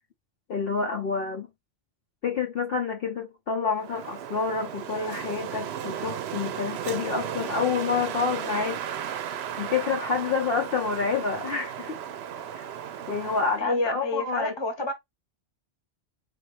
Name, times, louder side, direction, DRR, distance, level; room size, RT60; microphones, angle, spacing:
voice 1, 0.5-1.5 2.2-9.2 9.6-12.0 12.6-12.7 13.1-14.9, left 5 dB, 60° left, 0.8 m, -28 dB
Wind, 3.8-13.7, right 9 dB, 70° right, 0.8 m, -35 dB
voice 2, 13.6-14.9, left 2 dB, 25° left, 0.9 m, -29 dB
4.4 x 3.3 x 3.2 m
omnidirectional pair, 1.2 m